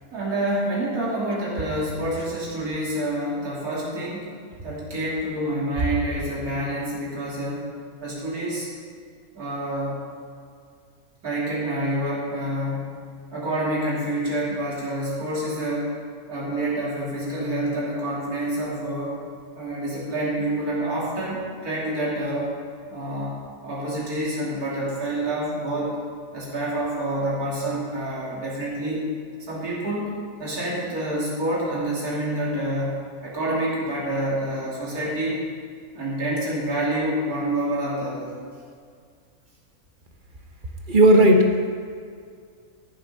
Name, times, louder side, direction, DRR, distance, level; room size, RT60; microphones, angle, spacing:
voice 1, 0.1-4.3 4.6-7.7 8.0-8.7 9.3-10.0 11.2-13.0 13.3-16.0 16.3-19.2 19.5-22.5 22.9-26.0 26.3-29.1 29.5-30.1 30.4-35.4 35.9-38.3, right 1 dB, 80° right, -6 dB, 3.3 m, -27 dB
voice 2, 40.9-41.7, right 1 dB, 35° right, 2 dB, 1.2 m, -15 dB
13.5 x 7.9 x 5.5 m, 2.2 s
omnidirectional pair, 1.5 m